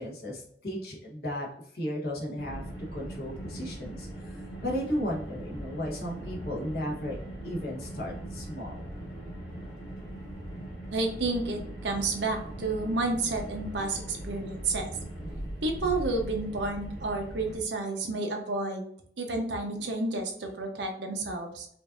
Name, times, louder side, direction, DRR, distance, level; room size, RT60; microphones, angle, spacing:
voice 1, 0.0-1.5 1.7-2.6 2.9-4.4 4.6-7.2 7.4-8.8, equal, 55° left, -2 dB, 1.2 m, -34 dB
Car, 2.4-17.6, right 1 dB, 25° left, 1.4 m, -40 dB
voice 2, 10.9-14.9 15.6-18.8 19.2-21.7, right 2 dB, 80° right, 3 dB, 0.8 m, -30 dB
5.1 x 2.6 x 2.5 m, 0.66 s
head